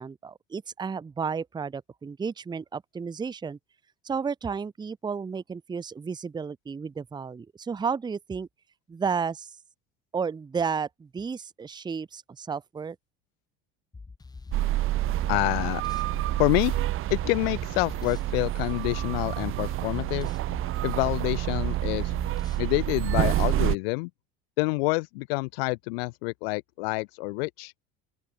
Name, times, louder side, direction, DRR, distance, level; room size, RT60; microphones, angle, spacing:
voice 1, 0.0-3.6 4.0-8.5 8.9-9.5 10.1-13.0, right 6 dB, 15° right, 0.8 m, -32 dB
sound 1, 13.9-22.7, left 4 dB, 15° left, 1.6 m, -43 dB
sound 2, 14.5-23.8, right 15 dB, 45° right, 1.0 m, -28 dB
voice 2, 15.3-15.8 16.4-16.7 17.1-20.3 20.8-22.1 22.6-24.1 24.6-27.7, left 27 dB, 85° left, 1.3 m, -27 dB
open air
supercardioid pair, 120°, 29 cm